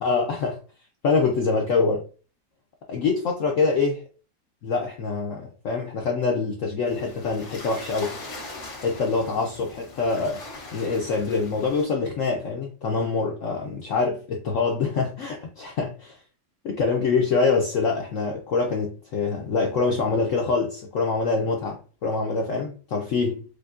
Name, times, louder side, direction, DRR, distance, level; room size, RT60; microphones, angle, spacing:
voice 1, 0.0-0.6 1.0-2.1 2.9-4.0 4.6-8.1 8.8-10.4 10.7-16.2 16.6-23.4, left 4 dB, 85° left, 0.6 m, -25 dB
sound 1, 6.9-11.9, left 2 dB, 55° left, 1.5 m, -41 dB
5.1 x 2.2 x 2.4 m
omnidirectional pair, 2.0 m